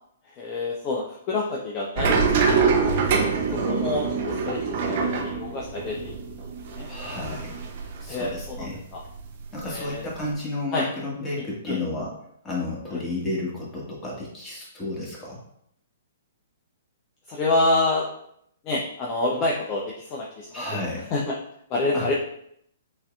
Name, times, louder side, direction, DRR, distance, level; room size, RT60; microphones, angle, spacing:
voice 1, 0.3-2.8 3.1-6.2 6.7-6.9 8.1-9.0 9.6-10.0 10.7-10.9 11.3-11.8 12.9-13.0 17.3-18.1 18.6-20.8 21.1-21.4 21.7-22.1, left 2 dB, 30° left, -2 dB, 0.6 m, -28 dB
sound 1, 2.0-8.7 9.0-10.3, right 5 dB, 50° right, 0.7 m, -25 dB
voice 2, 6.9-7.5 8.0-8.8 9.5-12.1 12.4-15.4 20.5-21.0 21.9-22.1, left 2 dB, 15° left, -5 dB, 1.5 m, -32 dB
6.3 x 2.8 x 2.3 m, 0.71 s
figure-of-eight pair, 120°, 0 cm